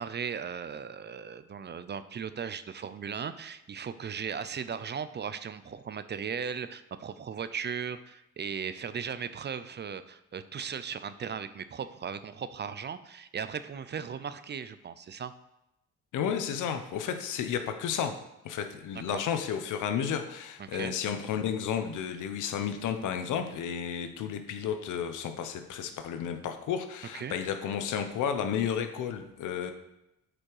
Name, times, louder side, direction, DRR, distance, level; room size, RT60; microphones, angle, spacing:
voice 1, 0.0-15.3 19.1-19.2 20.6-21.0 27.1-27.4, right 7 dB, 35° right, 13 dB, 0.5 m, -37 dB
voice 2, 16.1-18.1 18.4-29.7, left 8 dB, 85° left, 8 dB, 0.9 m, -32 dB
8.6 x 5.1 x 4.8 m, 0.88 s
cardioid pair, 90°, 30 cm